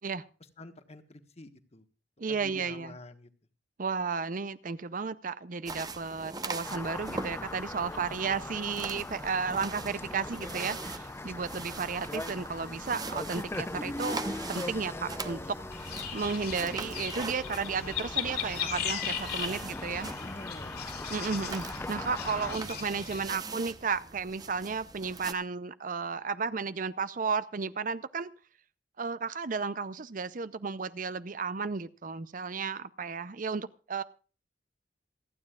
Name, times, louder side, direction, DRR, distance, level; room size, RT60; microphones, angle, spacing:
voice 1, 0.6-1.8 2.3-3.3 20.2-20.8, left 2 dB, 35° left, 1.3 m, -47 dB
voice 2, 2.2-2.9 3.8-14.2 14.5-15.6 15.8-20.1 21.1-28.3 29.0-34.0, right 5 dB, 50° right, 0.6 m, -33 dB
sound 1, 5.7-25.3, right 3 dB, 20° right, 0.9 m, -42 dB
sound 2, 6.6-22.6, left 2 dB, 15° left, 0.5 m, -40 dB
sound 3, 15.7-23.2, left 8 dB, 60° left, 3.0 m, -38 dB
27.5 x 9.6 x 2.4 m
head